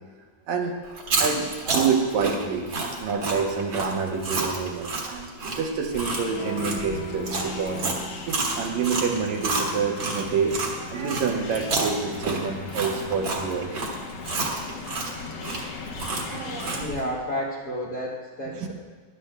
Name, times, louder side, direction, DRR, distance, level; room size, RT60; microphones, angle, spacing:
Chewing mastication, 0.9-10.7 11.1-17.0, right 3 dB, 45° right, 1.8 m, -29 dB
voice 1, 1.2-2.7 3.0-7.9 8.3-13.7 16.1-17.2, right 5 dB, 70° right, 2 dB, 2.1 m, -28 dB
sound 1, 5.9-16.9, left 3 dB, 65° left, 1.7 m, -37 dB
voice 2, 16.8-18.7, equal, 85° left, -4 dB, 0.8 m, -31 dB
19.0 x 11.5 x 2.2 m, 1.4 s
omnidirectional pair, 3.7 m